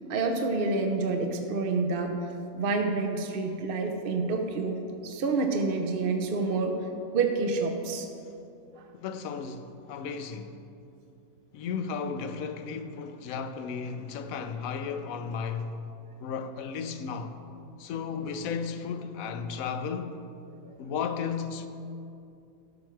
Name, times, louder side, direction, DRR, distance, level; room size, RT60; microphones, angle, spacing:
voice 1, 0.1-2.1 2.5-6.8 7.1-8.1, right 3 dB, 50° right, 0.7 m, -28 dB
voice 2, 8.9-10.6 11.5-15.8 16.2-17.4 17.8-20.2 20.8-21.7, left 6 dB, 75° left, 1.0 m, -34 dB
12.5 x 6.0 x 4.5 m
omnidirectional pair, 1.5 m